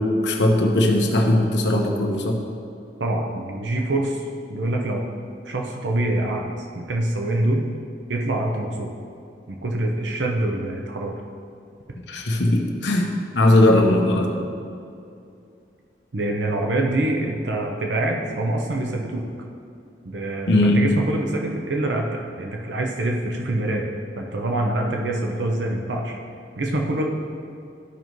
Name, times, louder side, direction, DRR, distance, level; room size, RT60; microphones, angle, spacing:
voice 1, 0.0-2.4 12.1-14.3 20.5-20.9, left 1 dB, 80° left, 1 dB, 1.1 m, -19 dB
voice 2, 3.0-5.0 5.5-7.7 8.1-8.9 9.5-11.2 16.1-19.3 20.0-20.5 20.7-23.9 24.2-26.2 26.6-27.0, right 1 dB, 80° right, 1 dB, 0.8 m, -25 dB
13.0 x 5.2 x 3.1 m, 2.5 s
head